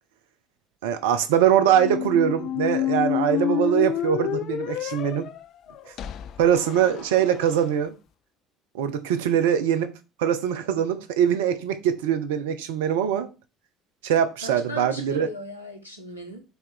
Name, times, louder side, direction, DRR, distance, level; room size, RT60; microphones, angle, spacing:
voice 1, 0.8-5.3 5.9-6.0 6.4-7.9 8.7-9.9 10.2-13.3 14.0-15.3, right 9 dB, 70° right, 0.8 m, -22 dB
sound 1, 1.7-7.6, left 11 dB, 50° left, 0.5 m, -29 dB
voice 2, 14.4-16.4, equal, 90° left, 1.2 m, -37 dB
5.6 x 4.4 x 6.3 m
figure-of-eight pair, 55°, 0 cm